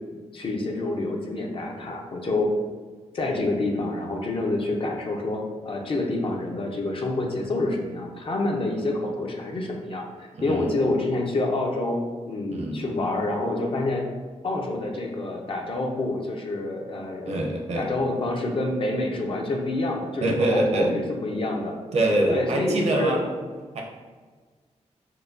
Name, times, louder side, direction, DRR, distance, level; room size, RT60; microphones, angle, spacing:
voice 1, 0.3-2.5 3.1-10.0 10.4-14.0 14.4-17.4 17.7-21.7 22.3-23.2, left 2 dB, 50° left, 0 dB, 0.6 m, -27 dB
voice 2, 10.3-10.7 12.5-12.8 17.2-17.9 20.2-20.9 21.9-23.2 23.7-23.8, right 1 dB, 65° right, 0 dB, 0.7 m, -24 dB
4.5 x 2.2 x 2.6 m, 1.4 s
wide cardioid pair, 100°, 12 cm